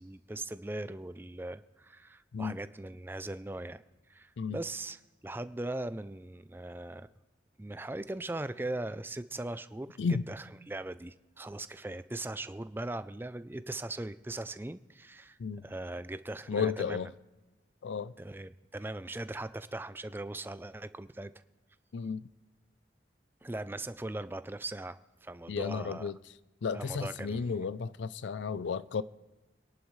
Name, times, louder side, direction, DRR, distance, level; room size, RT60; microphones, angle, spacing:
voice 1, 0.0-3.8 4.1-7.1 7.6-10.0 10.3-17.1 18.2-21.3 23.4-26.1 26.7-27.6, right 2 dB, 10° right, 0.4 m, -40 dB
voice 2, 16.5-17.1 17.8-18.1 21.9-22.2 25.5-26.2 26.6-29.0, left 5 dB, 90° left, 0.4 m, -33 dB
25.0 x 11.0 x 3.2 m
head